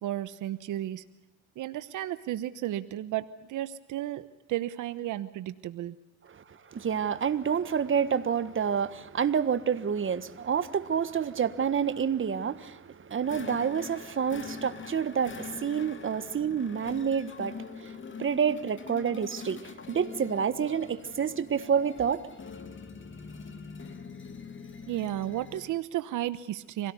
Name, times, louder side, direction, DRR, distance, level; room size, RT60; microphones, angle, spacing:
voice 1, 0.0-1.0 1.6-5.9 24.9-26.9, right 13 dB, 85° right, 1.1 m, -33 dB
voice 2, 6.7-22.2, right 7 dB, 40° right, 1.5 m, -28 dB
sound 1, 13.2-25.8, left 5 dB, 40° left, 2.7 m, -44 dB
26.5 x 17.5 x 8.1 m
cardioid pair, 90°, 30 cm